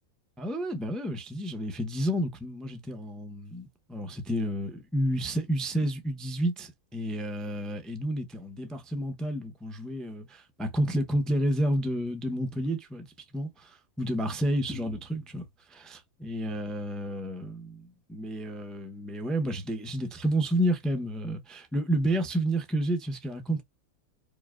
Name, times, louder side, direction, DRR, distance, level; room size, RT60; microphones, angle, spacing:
voice 1, 0.4-13.1 13.3-23.6, right 1 dB, ahead, 0.4 m, -30 dB
4.8 x 2.6 x 2.4 m
omnidirectional pair, 1.6 m